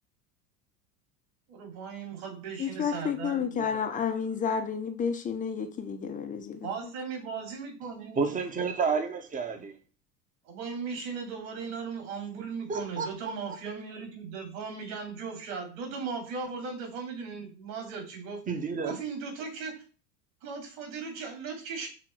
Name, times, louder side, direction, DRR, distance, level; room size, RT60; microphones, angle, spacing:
voice 1, 1.5-3.8 6.6-8.4 10.4-18.4 18.8-19.8 20.4-21.9, right 5 dB, 50° right, 2.9 m, -37 dB
voice 2, 2.6-6.9, left 6 dB, 15° left, 0.7 m, -31 dB
voice 3, 8.2-9.8 12.7-13.6 18.5-18.9, right 5 dB, 15° right, 1.0 m, -30 dB
6.2 x 3.8 x 4.6 m
figure-of-eight pair, 85°, 49 cm